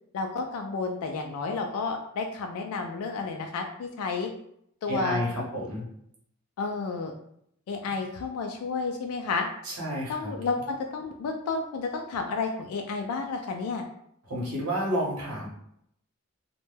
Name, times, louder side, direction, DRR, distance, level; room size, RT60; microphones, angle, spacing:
voice 1, 0.1-4.3 4.8-5.5 6.6-7.1 7.7-9.5 10.1-13.8, left 4 dB, 85° left, 3 dB, 0.3 m, -31 dB
voice 2, 4.9-5.8 9.6-10.3 14.3-15.5, equal, 80° right, -4 dB, 0.9 m, -30 dB
2.1 x 2.1 x 3.1 m, 0.72 s
head